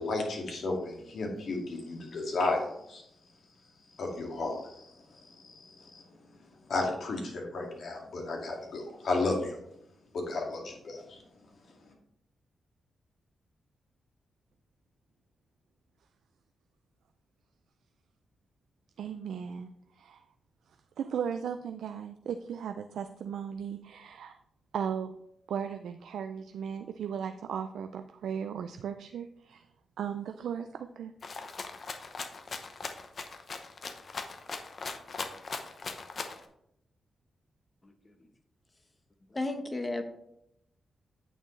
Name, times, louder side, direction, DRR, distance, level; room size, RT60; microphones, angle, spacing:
voice 1, 0.0-3.0 4.0-4.9 5.2-6.0 6.7-9.6 10.1-11.2, left 2 dB, 70° left, 1 dB, 2.0 m, -33 dB
voice 2, 19.0-19.7 20.0-20.2 21.0-24.4 24.7-25.1 25.5-29.7 30.0-31.1, right 7 dB, 85° right, 7 dB, 0.4 m, -36 dB
Rattle (instrument), 31.2-36.4, left 4 dB, 55° left, 0.9 m, -39 dB
voice 3, 39.3-40.0, left 2 dB, 30° left, 8 dB, 1.0 m, -32 dB
8.7 x 6.6 x 3.2 m, 0.79 s
cardioid pair, 60°, 0 cm